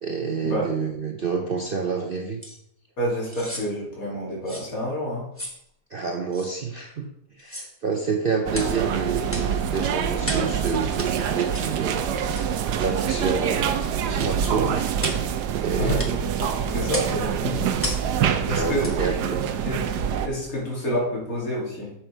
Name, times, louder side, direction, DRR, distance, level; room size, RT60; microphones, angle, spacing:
voice 1, 0.0-2.4 5.9-7.1 7.4-13.7 14.0-14.9 15.6-16.2 18.6-19.4, right 5 dB, 55° right, 2 dB, 0.6 m, -28 dB
sound 1, 2.4-2.6 3.2-3.7 4.5-4.7 5.4-5.6 6.3-6.5 7.4-7.7 8.5-8.8 9.3-9.5 10.2-10.5 11.0-11.1 11.5-11.7 12.3-12.5 13.1-13.3 14.2-14.4 15.0-15.3 16.0-16.2 16.9-17.2 17.8-18.1 18.8-19.0 19.5-19.6, equal, 10° left, 0.8 m, -33 dB
voice 2, 3.0-5.3 15.8-16.0 16.4-17.7 18.4-18.9 19.6-19.9 20.2-21.9, equal, 55° left, -4 dB, 2.9 m, -28 dB
sound 2, 8.5-20.3, right 8 dB, 75° right, 1.2 m, -25 dB
7.4 x 5.5 x 4.5 m, 0.74 s
omnidirectional pair, 1.8 m